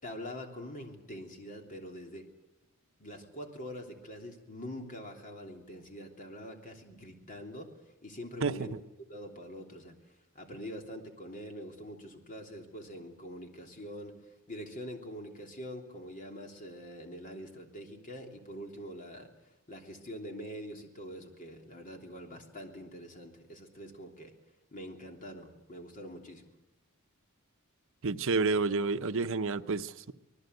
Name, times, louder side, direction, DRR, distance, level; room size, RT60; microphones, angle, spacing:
voice 1, 0.0-2.3 3.0-7.7 8.0-8.7 9.1-10.0 10.3-14.2 14.5-19.3 19.7-24.3 24.7-26.5, equal, 40° left, 3.2 m, -44 dB
voice 2, 8.4-8.8 28.0-30.1, right 4 dB, 65° right, 0.9 m, -30 dB
25.0 x 19.5 x 8.1 m
head